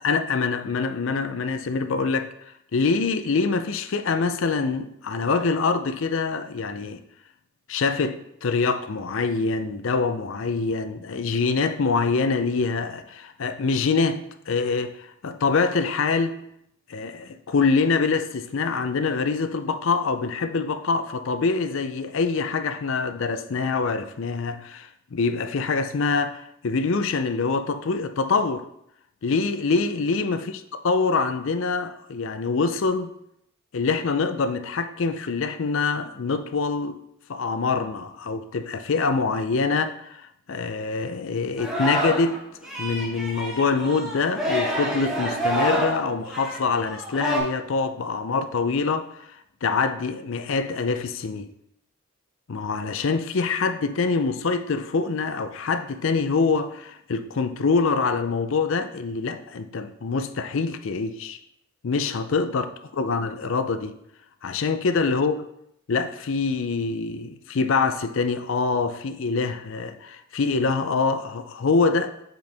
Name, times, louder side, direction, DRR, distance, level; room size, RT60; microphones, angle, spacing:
voice 1, 0.0-2.3 2.7-7.0 7.7-16.4 16.9-28.7 29.2-33.1 33.7-37.0 37.3-42.4 42.8-51.5 52.5-61.4 61.8-62.7 62.9-64.0 64.4-65.4 65.9-72.2, left 4 dB, 65° left, 0.5 m, -25 dB
Singing, 41.6-42.4 42.6-47.4, equal, ahead, 1.3 m, -27 dB
7.6 x 4.5 x 3.4 m
head